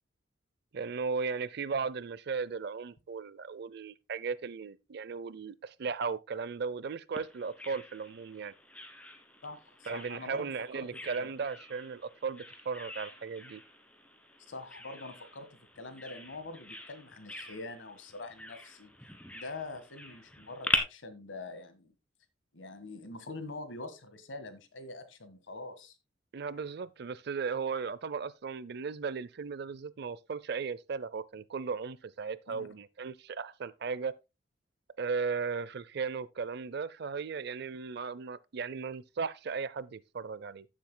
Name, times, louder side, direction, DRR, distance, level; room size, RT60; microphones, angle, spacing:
voice 1, 0.7-8.5 9.9-13.6 26.3-34.1 35.0-40.7, right 5 dB, 60° right, 0.5 m, -36 dB
Bird vocalization bird call bird song, 7.2-20.8, left 1 dB, 5° left, 1.3 m, -42 dB
voice 2, 9.4-10.8 11.1-11.3 14.5-18.9 19.3-21.9 22.5-26.0 32.5-32.7, left 2 dB, 90° left, 1.6 m, -44 dB
15.0 x 7.4 x 2.2 m
head